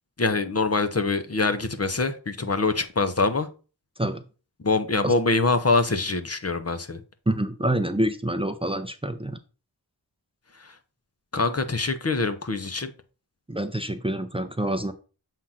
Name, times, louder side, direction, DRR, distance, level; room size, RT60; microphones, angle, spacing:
voice 1, 0.2-3.5 4.6-7.0 10.6-10.7 11.3-12.9, left 3 dB, 40° left, 9 dB, 0.7 m, -24 dB
voice 2, 7.3-9.4 13.5-14.9, right 1 dB, 15° right, 9 dB, 0.6 m, -27 dB
7.4 x 2.5 x 5.6 m, 0.34 s
wide cardioid pair, 55°, 39 cm